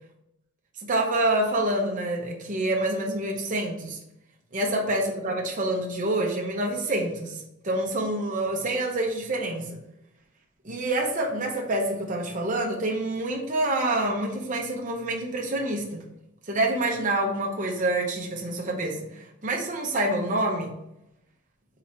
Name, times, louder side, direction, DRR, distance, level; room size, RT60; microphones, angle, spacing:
voice 1, 0.8-4.0 4.5-9.8 10.6-16.0 16.5-20.7, right 1 dB, 35° right, 0 dB, 0.7 m, -27 dB
3.8 x 3.0 x 4.2 m, 0.82 s
head